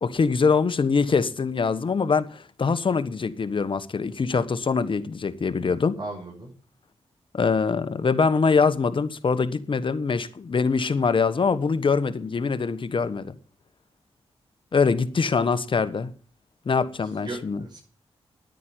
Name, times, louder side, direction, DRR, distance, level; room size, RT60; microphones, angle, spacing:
voice 1, 0.0-6.0 7.3-13.3 14.7-16.1 16.6-17.6, left 5 dB, 50° left, 1.4 m, -23 dB
voice 2, 6.0-6.5 17.1-17.8, right 2 dB, 40° right, 6.6 m, -37 dB
10.5 x 9.4 x 9.7 m
cardioid pair, 65°, 11 cm